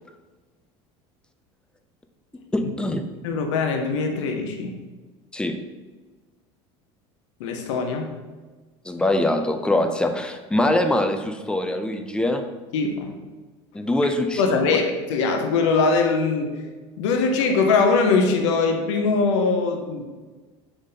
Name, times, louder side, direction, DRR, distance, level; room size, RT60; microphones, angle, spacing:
voice 1, 2.5-3.0 5.3-5.6 8.9-12.4 13.7-14.6, left 1 dB, 5° left, 6 dB, 0.3 m, -23 dB
voice 2, 3.2-4.8 7.4-8.1 12.7-13.1 14.4-16.6 17.0-20.0, left 4 dB, 85° left, 4 dB, 0.5 m, -22 dB
3.6 x 3.4 x 2.7 m, 1.3 s
supercardioid pair, 95°, 15 cm